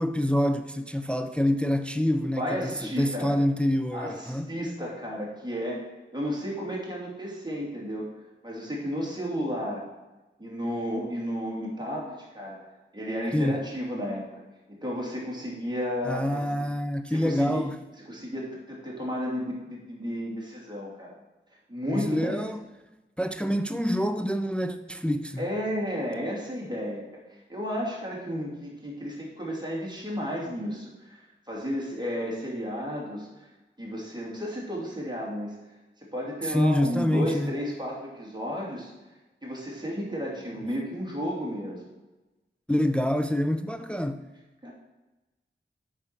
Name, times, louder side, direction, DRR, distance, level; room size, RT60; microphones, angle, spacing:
voice 1, 0.0-4.5 13.3-13.7 16.1-17.8 21.9-22.6 23.2-25.5 36.4-37.5 42.7-44.2, left 1 dB, 5° left, 0.4 m, -26 dB
voice 2, 2.4-3.3 3.9-5.8 6.1-8.1 8.4-9.8 10.4-12.6 12.9-14.3 14.7-16.7 17.1-17.7 18.1-21.1 21.7-22.5 25.4-33.5 33.8-35.5 36.0-38.9 39.4-41.8 44.6-44.7, equal, 20° right, 2.7 m, -33 dB
8.0 x 4.8 x 5.8 m
wide cardioid pair, 60°, 21 cm